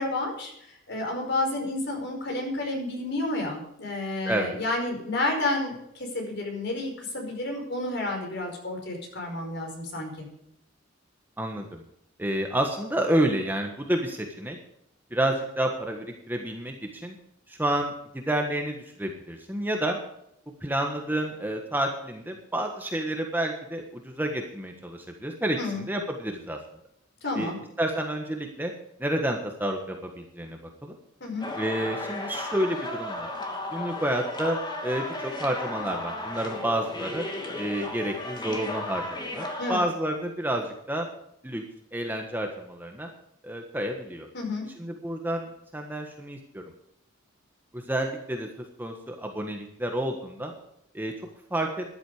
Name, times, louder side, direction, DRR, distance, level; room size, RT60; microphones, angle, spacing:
voice 1, 0.0-10.2 25.6-25.8 27.2-27.6 31.2-31.5 39.6-39.8 44.3-44.7, left 2 dB, 60° left, 2 dB, 5.1 m, -30 dB
voice 2, 4.2-4.6 11.4-11.8 12.2-14.6 15.1-17.2 17.5-20.0 20.6-26.6 27.3-27.5 27.8-28.7 29.0-30.9 31.5-33.3 33.7-37.2 37.6-39.0 39.3-41.1 41.4-41.6 41.9-43.1 43.4-44.3 44.8-46.6 47.7-48.5 48.8-50.5 50.9-51.1 51.5-51.8, right 1 dB, 10° right, 3 dB, 1.4 m, -29 dB
sound 1, 31.4-39.8, left 2 dB, 25° left, 2.7 m, -34 dB
13.5 x 11.5 x 5.0 m, 0.76 s
head